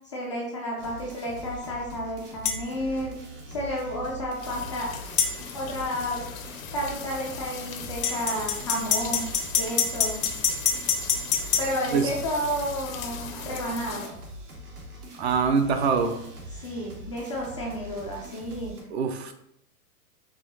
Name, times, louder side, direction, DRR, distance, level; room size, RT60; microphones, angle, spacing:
voice 1, 0.1-3.2 3.5-4.9 5.5-6.3 6.7-9.3 9.6-10.2 11.6-14.1 16.6-18.8, equal, 25° left, -4 dB, 0.3 m, -31 dB
sound 1, 0.8-18.8, right 1 dB, 75° right, 1.5 m, -43 dB
sound 2, 2.4-2.6 5.2-5.3 8.0-11.7, left 6 dB, 85° left, 1.1 m, -24 dB
sound 3, 4.4-14.1, left 8 dB, 65° left, 0.8 m, -40 dB
voice 2, 15.2-16.2 18.9-19.3, right 5 dB, 45° right, 7 dB, 0.5 m, -24 dB
5.3 x 2.4 x 3.9 m, 0.76 s
hypercardioid pair, 140°, 45 cm